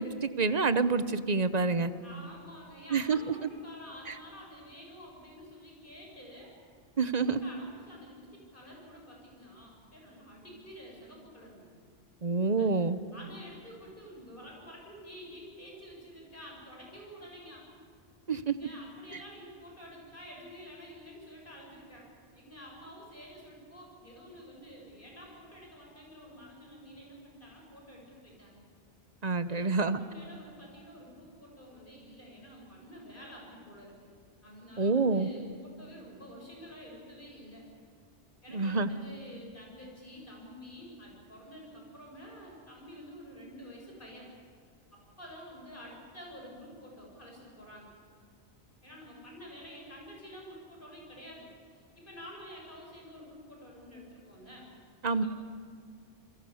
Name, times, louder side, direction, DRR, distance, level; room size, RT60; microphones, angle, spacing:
voice 1, 0.0-1.9 2.9-3.3 4.1-4.2 7.0-7.4 12.2-13.0 18.3-18.5 29.2-30.0 34.8-35.3 38.5-38.9 55.0-55.2, right 4 dB, 40° right, 12 dB, 1.0 m, -27 dB
voice 2, 2.0-6.5 7.1-11.7 12.6-12.8 13.1-17.7 18.5-28.6 29.5-34.1 34.4-37.6 38.4-44.3 44.9-47.9 48.8-54.7 55.2-55.3, equal, 50° left, -1 dB, 8.0 m, -49 dB
28.5 x 23.0 x 7.2 m, 2.1 s
omnidirectional pair, 1.1 m